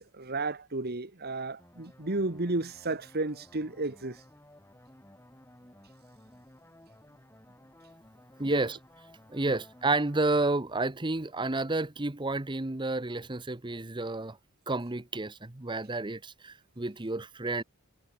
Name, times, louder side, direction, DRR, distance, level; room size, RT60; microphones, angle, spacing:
voice 1, 0.0-4.2 8.5-8.6 9.5-9.6, right 2 dB, 45° right, 1.6 m, -33 dB
sound 1, 1.6-10.5, left 1 dB, 10° left, 6.9 m, -56 dB
voice 2, 8.4-8.8 9.3-14.4 14.7-17.6, right 2 dB, 20° right, 0.9 m, -30 dB
head